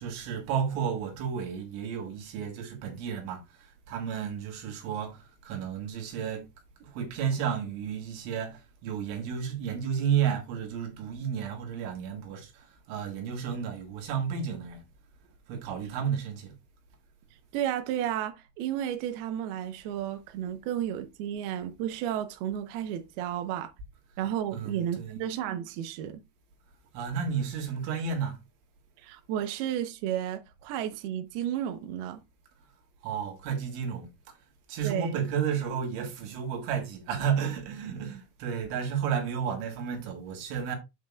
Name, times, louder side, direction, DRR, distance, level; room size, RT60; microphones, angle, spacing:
voice 1, 0.0-6.5 6.8-14.8 15.5-16.6 24.5-25.2 26.9-28.4 33.0-34.4 34.7-40.8, right 7 dB, 70° right, 4.0 m, -32 dB
voice 2, 17.5-23.7 24.2-26.2 29.0-32.2 34.8-35.2, right 10 dB, 85° right, 2.2 m, -32 dB
8.2 x 7.6 x 2.4 m
omnidirectional pair, 5.9 m